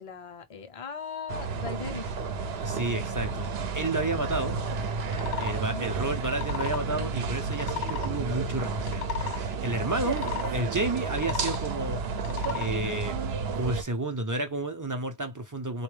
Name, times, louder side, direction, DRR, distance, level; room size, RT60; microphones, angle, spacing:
voice 1, 0.0-2.1 5.6-5.9, left 5 dB, 40° left, 0.6 m, -39 dB
sound 1, 1.3-13.8, right 4 dB, 75° right, 0.9 m, -31 dB
voice 2, 2.6-3.5 3.7-4.6 5.4-12.0 12.5-13.2 13.5-15.8, right 2 dB, 25° right, 0.5 m, -31 dB
sound 2, 5.0-5.6 6.2-6.8 7.5-8.1 8.7-9.4 10.1-10.5 11.1-11.6 12.2-12.7, left 11 dB, 70° left, 0.8 m, -35 dB
3.7 x 2.3 x 3.2 m
omnidirectional pair, 1.1 m